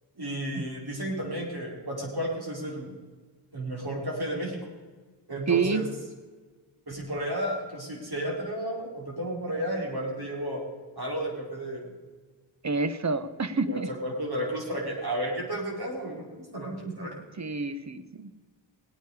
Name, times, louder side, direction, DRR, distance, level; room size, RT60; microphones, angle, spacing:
voice 1, 0.2-2.9 3.5-4.7 5.3-5.9 6.9-10.6 11.0-11.8 13.7-17.1, right 1 dB, 50° right, -2 dB, 4.6 m, -32 dB
voice 2, 5.5-5.8 12.6-13.9 17.4-18.3, right 4 dB, 35° right, 12 dB, 1.1 m, -28 dB
18.0 x 9.2 x 4.9 m, 1.3 s
cardioid pair, 40°, 48 cm